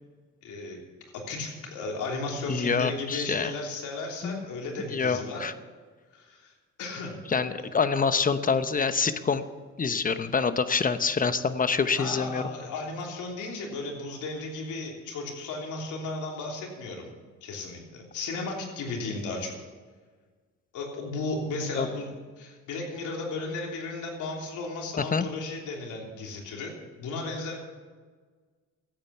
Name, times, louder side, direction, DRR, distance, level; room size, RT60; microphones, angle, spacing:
voice 1, 0.4-0.8 1.1-5.5 6.1-6.5 6.8-7.2 11.9-17.1 17.4-19.5 20.7-22.1 22.4-26.7 27.0-27.6, left 3 dB, 85° left, 0 dB, 3.3 m, -35 dB
voice 2, 2.5-3.5 4.2-4.4 4.9-5.5 7.3-9.4 9.8-12.5 21.8-21.9 25.0-25.3, left 5 dB, 30° left, 11 dB, 0.9 m, -26 dB
14.0 x 8.9 x 7.0 m, 1.5 s
cardioid pair, 90°, 30 cm